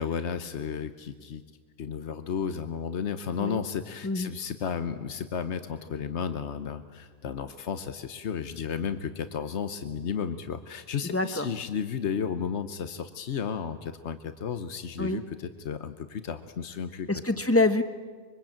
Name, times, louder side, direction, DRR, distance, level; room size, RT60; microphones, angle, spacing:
voice 1, 0.0-1.4 1.8-17.1, left 7 dB, 85° left, 10 dB, 1.3 m, -33 dB
voice 2, 11.0-11.5 15.0-15.2 17.1-17.8, left 2 dB, 15° left, 9 dB, 1.2 m, -25 dB
25.5 x 23.5 x 8.8 m, 1.5 s
omnidirectional pair, 1.1 m